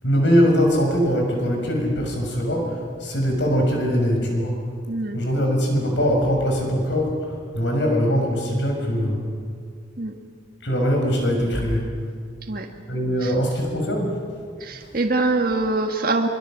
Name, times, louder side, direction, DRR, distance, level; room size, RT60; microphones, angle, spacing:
voice 1, 0.0-4.6 5.1-9.3 10.6-11.9 12.9-14.2 14.8-14.9, equal, 65° left, 1 dB, 6.5 m, -22 dB
voice 2, 4.9-5.2 10.0-10.1 12.5-12.7 13.2-13.3 14.6-16.3, right 2 dB, 45° right, 3 dB, 1.7 m, -23 dB
25.5 x 24.5 x 7.6 m, 2.1 s
head